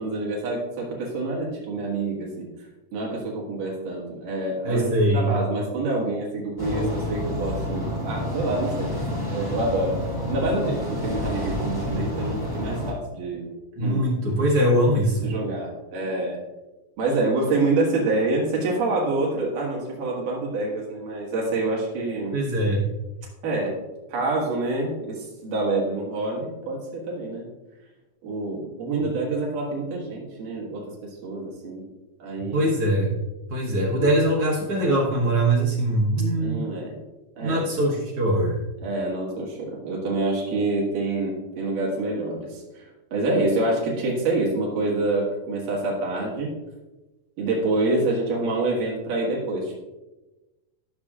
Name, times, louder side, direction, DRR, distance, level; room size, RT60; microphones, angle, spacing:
voice 1, 0.0-2.5 2.9-4.9 5.1-8.9 9.3-10.0 10.3-13.5 13.8-14.0 15.2-16.4 17.0-22.3 23.4-23.7 24.1-27.5 28.2-31.8 32.2-32.7 36.4-36.9 37.4-37.7 38.8-46.5 47.4-49.7, right 2 dB, 85° right, -4 dB, 3.4 m, -27 dB
voice 2, 4.7-5.3 13.8-15.3 22.3-22.8 32.5-33.1 33.5-36.7 37.4-38.6, right 1 dB, 60° right, -2 dB, 1.8 m, -22 dB
sound 1, 6.6-12.9, left 1 dB, 25° left, 0.4 m, -29 dB
12.5 x 6.8 x 2.4 m, 1.1 s
omnidirectional pair, 3.6 m